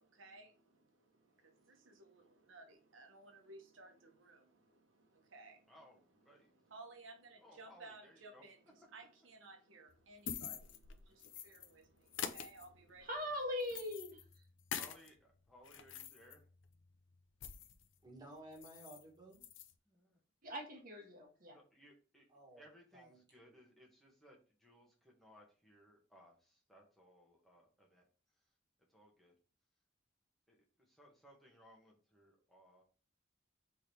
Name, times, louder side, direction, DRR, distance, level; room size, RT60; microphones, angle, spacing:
voice 1, 2.9-3.9 4.2-4.4 5.3-5.6 6.7-8.6 8.9-10.5 11.4-11.6 12.3-13.0, right 3 dB, 90° right, 1.0 m, -55 dB
voice 2, 5.7-6.5 7.4-8.5 8.8-8.9 11.1-11.2 14.7-16.4 19.9-20.2 21.5-22.3 22.6-28.0 28.9-29.3 30.5-32.8, equal, ahead, 1.1 m, -63 dB
sound 1, 9.9-11.7 12.1-15.1 15.5-17.9 18.2-18.3 18.5-19.0 19.3-19.7, left 8 dB, 70° left, 0.5 m, -47 dB
voice 3, 13.0-14.2 20.4-21.6, left 1 dB, 45° right, 1.3 m, -41 dB
voice 4, 18.0-19.5 22.3-22.6 22.9-23.5, right 1 dB, 20° right, 1.5 m, -56 dB
3.7 x 3.3 x 4.3 m
head